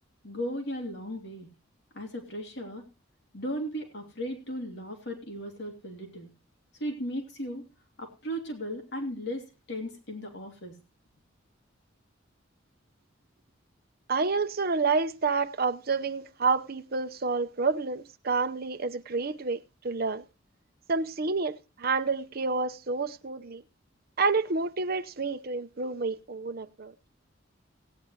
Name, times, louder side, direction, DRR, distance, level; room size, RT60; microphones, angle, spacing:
voice 1, 0.2-1.5 1.9-2.8 3.3-6.3 6.7-7.6 8.0-10.8, equal, 60° left, 2.9 m, -36 dB
voice 2, 14.1-20.2 20.9-23.6 24.2-26.9, right 4 dB, 50° right, 0.8 m, -29 dB
18.0 x 9.7 x 3.2 m
head